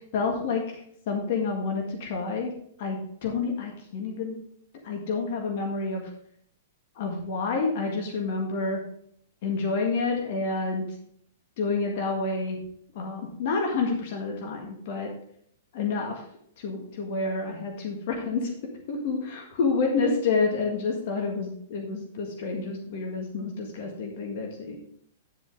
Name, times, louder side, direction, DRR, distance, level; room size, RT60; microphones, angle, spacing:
voice 1, 0.1-0.8 1.1-2.5 2.8-4.3 4.8-6.1 7.0-8.8 9.4-10.9 11.6-12.6 13.0-15.1 15.7-16.2 16.6-18.5 18.9-24.8, left 4 dB, 50° left, 2 dB, 1.8 m, -29 dB
9.9 x 7.5 x 3.5 m, 0.66 s
figure-of-eight pair, 105°, 0 cm